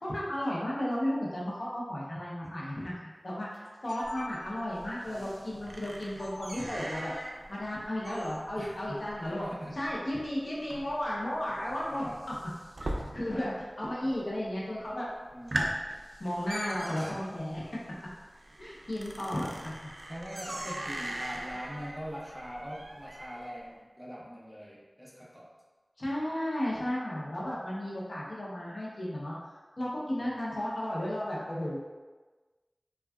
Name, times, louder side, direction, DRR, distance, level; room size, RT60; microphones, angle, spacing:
voice 1, 0.0-3.5 3.8-7.1 7.5-9.5 9.7-12.3 12.8-15.1 15.5-15.7 16.2-17.6 18.6-19.7 26.0-29.3 29.8-31.8, left 1 dB, 75° left, -6 dB, 0.7 m, -34 dB
sound 1, 3.5-4.8 6.2-6.4 8.0-8.5, equal, 40° left, 1.3 m, -47 dB
sound 2, 4.0-13.6 13.9-14.5 14.9-15.0 15.3-23.6, right 1 dB, 70° right, 0.3 m, -41 dB
voice 2, 5.1-5.7 8.6-9.8 11.5-12.2 14.0-14.2 15.3-15.7 17.0-17.2 17.5-18.0 20.1-25.5 29.8-30.3, equal, 5° right, -5 dB, 0.6 m, -44 dB
3.4 x 2.3 x 2.2 m, 1.3 s
wide cardioid pair, 45°, 0 cm